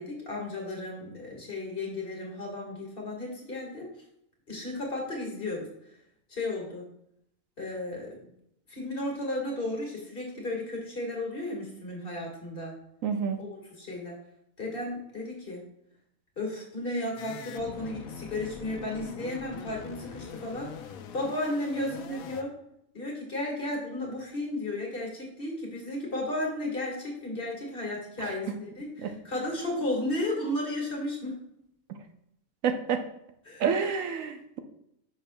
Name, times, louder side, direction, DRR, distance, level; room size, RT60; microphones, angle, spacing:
voice 1, 0.0-3.9 4.5-5.7 6.3-6.9 7.6-8.3 8.7-12.7 13.4-14.2 14.6-15.6 16.4-20.7 21.1-22.5 22.9-31.4 33.5-33.7, left 1 dB, 40° left, -1 dB, 1.8 m, -34 dB
voice 2, 13.0-13.4 28.2-28.3 29.0-29.1 32.6-33.0 33.6-34.6, right 6 dB, 75° right, 7 dB, 1.0 m, -28 dB
sound 1, 17.2-22.4, left 7 dB, 90° left, 1.0 m, -43 dB
10.0 x 6.2 x 2.2 m, 0.77 s
omnidirectional pair, 1.4 m